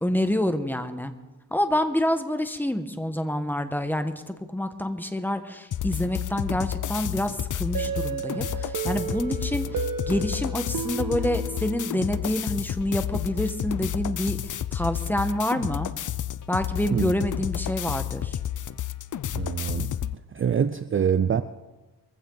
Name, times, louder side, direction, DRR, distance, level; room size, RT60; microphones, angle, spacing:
voice 1, 0.0-1.1 1.5-15.9 16.5-18.4, left 1 dB, 5° left, 8 dB, 1.3 m, -27 dB
sound 1, 5.7-20.2, left 11 dB, 50° left, 0.6 m, -31 dB
sound 2, 7.7-12.4, right 6 dB, 60° right, 1.6 m, -33 dB
voice 2, 19.3-19.9 20.3-21.4, right 7 dB, 30° right, 12 dB, 0.5 m, -25 dB
22.5 x 15.5 x 4.0 m, 1.2 s
cardioid pair, 115°, 39 cm